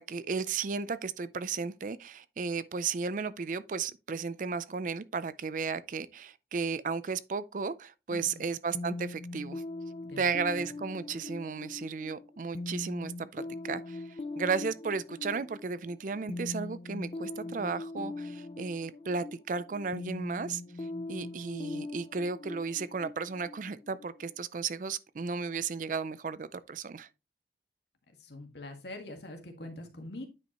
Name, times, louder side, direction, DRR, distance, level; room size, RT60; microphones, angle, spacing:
voice 1, 0.0-9.6 10.2-14.0 14.4-20.6 21.1-27.1, right 5 dB, 45° right, 0.4 m, -34 dB
voice 2, 8.1-8.5 10.1-10.3 28.2-30.3, left 1 dB, 70° left, 1.8 m, -44 dB
sound 1, 8.7-24.3, left 2 dB, 35° left, 0.4 m, -41 dB
9.3 x 5.3 x 2.9 m
head